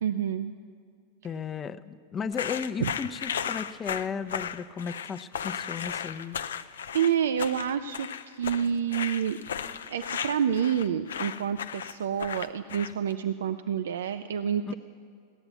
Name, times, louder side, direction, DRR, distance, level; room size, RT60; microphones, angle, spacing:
voice 1, 0.0-0.5 2.8-2.9 6.9-9.4 9.9-14.7, right 8 dB, 80° right, 10 dB, 0.4 m, -28 dB
voice 2, 1.2-6.4 14.6-14.7, left 6 dB, 25° left, 11 dB, 0.6 m, -35 dB
sound 1, 2.3-13.1, left 8 dB, 85° left, 0.5 m, -35 dB
16.5 x 10.5 x 8.1 m, 2.2 s
hypercardioid pair, 110°, 0 cm